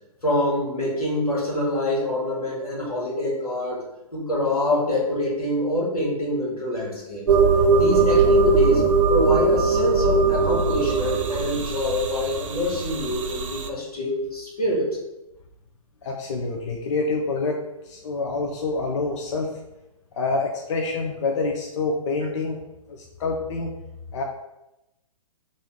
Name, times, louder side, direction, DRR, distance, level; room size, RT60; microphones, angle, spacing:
voice 1, 0.2-3.8 4.1-7.3 7.8-14.9, left 1 dB, 85° left, -4 dB, 1.4 m, -25 dB
sound 1, 7.3-13.7, right 4 dB, 60° right, 0.4 m, -20 dB
voice 2, 16.0-19.6 20.2-22.6 22.9-23.7 24.1-24.2, left 3 dB, 55° left, 1 dB, 0.5 m, -27 dB
3.1 x 2.5 x 3.7 m, 0.93 s
figure-of-eight pair, 120°, 19 cm